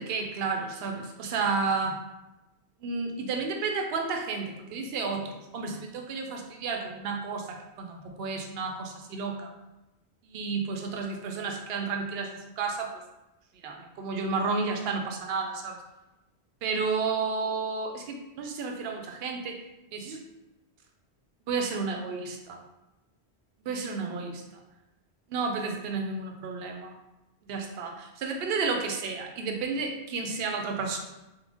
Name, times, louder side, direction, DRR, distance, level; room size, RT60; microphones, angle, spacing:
voice 1, 0.0-2.0 2.8-9.5 10.3-12.9 13.6-15.8 16.6-19.6 19.9-20.2 21.5-22.6 23.7-24.4 25.3-26.9 27.5-31.0, right 4 dB, 70° right, 2 dB, 0.8 m, -31 dB
3.7 x 2.1 x 3.5 m, 0.99 s
omnidirectional pair, 1.1 m